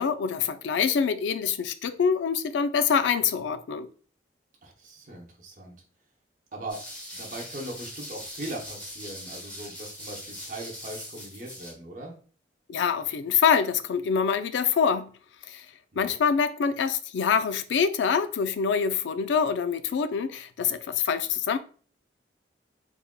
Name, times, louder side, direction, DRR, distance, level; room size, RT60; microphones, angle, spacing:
voice 1, 0.0-3.9 12.7-15.1 15.5-15.7 16.0-21.6, left 6 dB, 90° left, 0.3 m, -25 dB
voice 2, 4.6-5.7 6.5-6.8 7.1-12.1 15.9-16.1, right 1 dB, 45° right, 0.8 m, -40 dB
sound 1, 6.7-11.7, equal, 5° left, 1.2 m, -41 dB
3.6 x 3.3 x 2.2 m
head